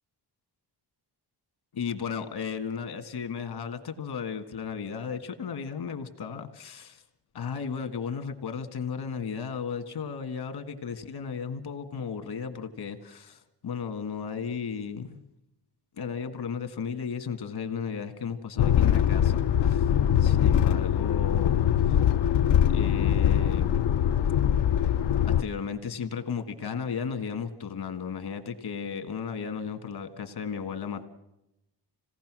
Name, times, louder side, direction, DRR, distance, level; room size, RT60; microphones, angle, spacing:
voice 1, 1.7-7.0 7.3-15.3 16.0-19.9 20.2-22.0 22.7-23.7 25.3-31.1, left 6 dB, 70° left, 7 dB, 1.8 m, -35 dB
sound 1, 18.6-25.4, left 10 dB, 85° left, 0.7 m, -22 dB
27.0 x 18.0 x 6.2 m, 0.90 s
wide cardioid pair, 140°, 40 cm